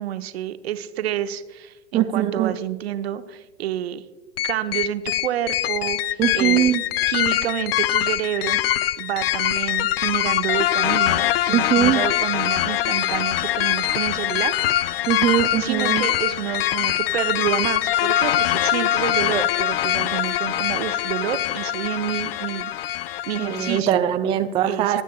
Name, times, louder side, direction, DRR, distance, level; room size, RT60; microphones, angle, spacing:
voice 1, 0.0-4.0 4.4-6.7 7.1-8.6 9.0-14.5 14.8-15.1 15.6-24.1 24.6-25.0, right 11 dB, 65° right, 11 dB, 0.8 m, -29 dB
voice 2, 1.9-2.5 6.2-6.8 11.5-12.0 15.1-16.0 23.4-25.0, right 11 dB, 15° right, 7 dB, 0.4 m, -21 dB
sound 1, 4.4-23.8, left 13 dB, 60° left, 0.4 m, -23 dB
20.5 x 8.2 x 2.3 m, 1.2 s
hypercardioid pair, 100°, 34 cm